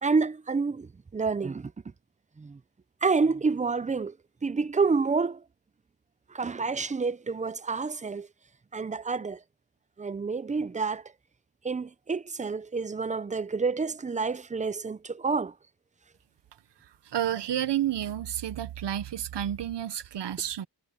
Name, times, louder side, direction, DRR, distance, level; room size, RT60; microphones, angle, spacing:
voice 1, 0.0-1.7 2.4-2.6 3.0-4.2 4.4-5.4 6.3-8.3 8.7-9.4 10.0-11.0 11.6-15.5, right 4 dB, 20° right, 0.4 m, -28 dB
voice 2, 16.8-20.7, right 11 dB, 80° right, 1.0 m, -31 dB
wide cardioid pair, 140°, 41 cm